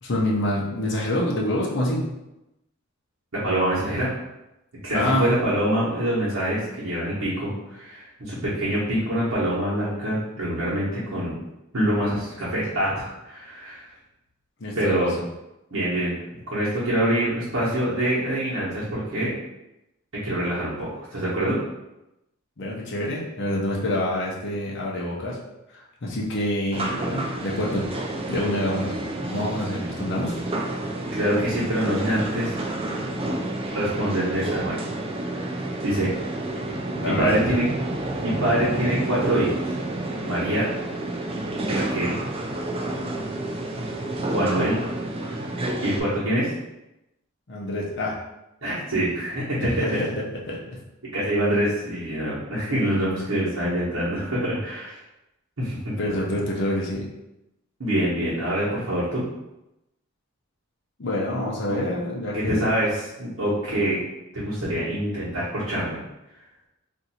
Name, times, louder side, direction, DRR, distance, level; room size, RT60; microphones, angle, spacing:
voice 1, 0.0-2.0 4.9-5.2 14.6-15.2 22.6-25.4 25.7-27.8 28.3-29.0 29.3-30.4 36.9-37.4 44.3-44.6 47.5-48.2 49.6-50.6 56.0-57.1 61.0-62.8, left 1 dB, 55° left, -3 dB, 0.7 m, -27 dB
voice 2, 3.3-4.1 4.8-11.4 11.7-13.8 14.8-15.1 15.7-16.2 16.5-19.3 20.1-21.6 29.7-29.8 31.1-32.6 33.7-34.8 35.3-35.4 35.8-36.1 37.0-37.6 38.2-39.6 40.2-40.7 41.7-42.2 44.3-44.8 45.3-45.5 45.8-46.5 48.6-50.0 51.1-55.0 55.6-55.9 57.8-59.3 61.7-61.8 62.3-64.0 64.3-66.0, right 1 dB, 75° right, -10 dB, 1.1 m, -25 dB
sound 1, 26.7-46.0, right 1 dB, 25° right, 0.3 m, -29 dB
2.6 x 2.5 x 4.2 m, 0.92 s
head